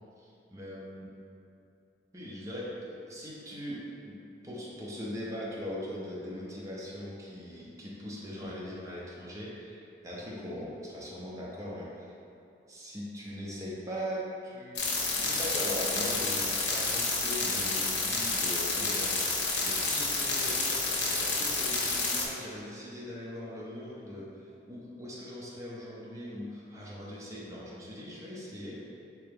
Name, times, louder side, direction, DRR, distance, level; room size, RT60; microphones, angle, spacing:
voice 1, 0.2-1.1 2.1-12.1 12.7-28.9, equal, 20° right, -6 dB, 0.5 m, -40 dB
sound 1, 14.7-22.2, left 3 dB, 85° left, 0.6 m, -29 dB
3.6 x 2.8 x 3.4 m, 2.6 s
head